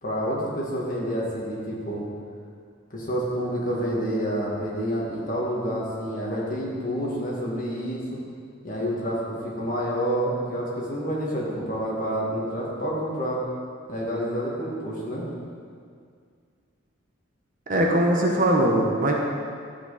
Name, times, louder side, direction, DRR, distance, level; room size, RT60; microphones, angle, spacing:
voice 1, 0.0-2.1 2.9-8.2 8.6-13.4 13.9-15.3, equal, 40° left, -4 dB, 2.1 m, -28 dB
voice 2, 17.7-19.2, right 1 dB, 40° right, -1 dB, 1.1 m, -21 dB
12.5 x 7.8 x 4.2 m, 2.2 s
head